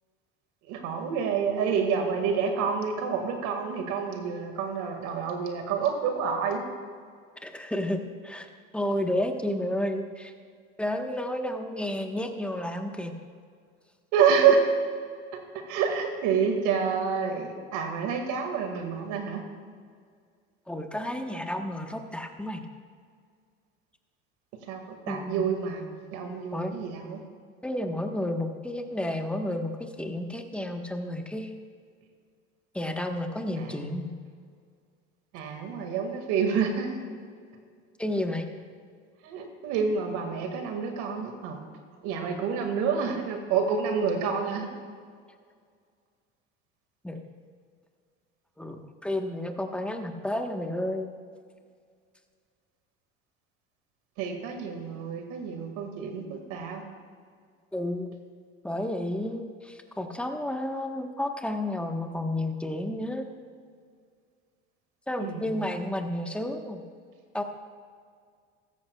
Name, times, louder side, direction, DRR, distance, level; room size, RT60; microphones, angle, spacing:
voice 1, 0.7-6.6 14.1-14.6 15.7-19.4 24.7-25.8 26.1-27.2 33.6-33.7 35.3-37.0 39.2-41.6 42.0-44.7 54.2-56.8 65.2-65.8, right 6 dB, 70° right, 4 dB, 2.0 m, -28 dB
voice 2, 7.4-8.5 8.7-10.3 10.8-13.1 20.7-22.6 25.1-25.5 26.5-26.7 27.6-31.5 32.7-34.1 38.0-38.5 47.0-47.2 48.6-51.1 57.7-58.1 58.6-63.3 65.1-66.8 67.3-67.4, left 1 dB, 5° left, 5 dB, 1.2 m, -31 dB
16.0 x 14.0 x 2.3 m, 2.1 s
hypercardioid pair, 80°, 31 cm